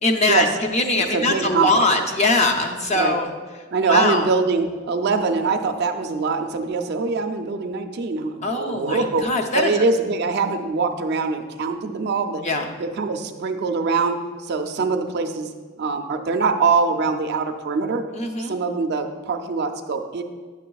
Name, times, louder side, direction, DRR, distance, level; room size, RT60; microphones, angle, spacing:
voice 1, 0.0-3.3 3.9-4.2 8.4-9.7 12.4-12.7 18.1-18.6, left 2 dB, 30° left, 3 dB, 0.5 m, -22 dB
voice 2, 1.0-1.8 2.9-3.2 3.7-9.3 9.5-12.4 12.8-15.5 15.8-18.1 18.4-20.2, right 4 dB, 50° right, 5 dB, 0.4 m, -23 dB
9.4 x 6.5 x 2.3 m, 1.5 s
head